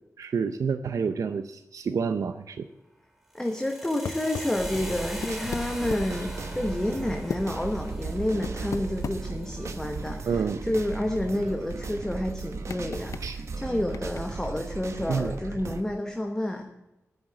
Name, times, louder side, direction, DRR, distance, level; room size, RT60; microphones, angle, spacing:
voice 1, 0.2-2.7 10.3-10.6 13.2-13.4 15.1-15.3, right 6 dB, 85° right, 9 dB, 0.6 m, -28 dB
voice 2, 3.3-16.7, left 1 dB, 10° left, 3 dB, 1.0 m, -30 dB
sound 1, 3.3-11.3, equal, 5° right, 2.0 m, -43 dB
sound 2, 4.1-4.6 5.1-6.2 7.3-7.4 8.4-9.2 9.5-9.6 10.0-10.8 11.1-11.2 11.3-11.5 12.7-13.2 13.9-14.2, left 6 dB, 75° left, 0.6 m, -35 dB
sound 3, 4.6-15.8, right 4 dB, 60° right, 1.0 m, -36 dB
10.0 x 8.7 x 7.5 m, 0.93 s
wide cardioid pair, 145°, 5 cm